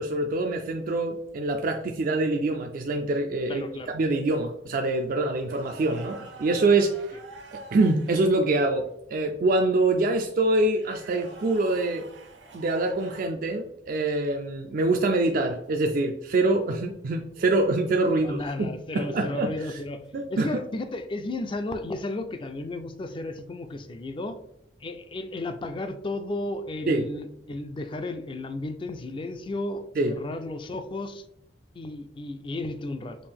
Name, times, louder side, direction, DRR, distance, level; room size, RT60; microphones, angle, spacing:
voice 1, 0.0-3.6 3.9-7.2 7.5-12.1 12.5-19.8 20.1-20.6 26.9-27.0 30.0-30.1, right 2 dB, 50° right, 3 dB, 0.4 m, -25 dB
voice 2, 3.5-3.9 18.1-20.0 20.3-24.4 24.8-31.2 31.7-33.2, left 2 dB, 30° left, 9 dB, 0.4 m, -33 dB
sound 1, 5.5-8.6 10.7-13.3 15.7-15.9 18.2-18.5 21.4-21.6 23.7-24.0, right 3 dB, 75° right, 0.8 m, -46 dB
5.2 x 2.5 x 3.4 m, 0.77 s
head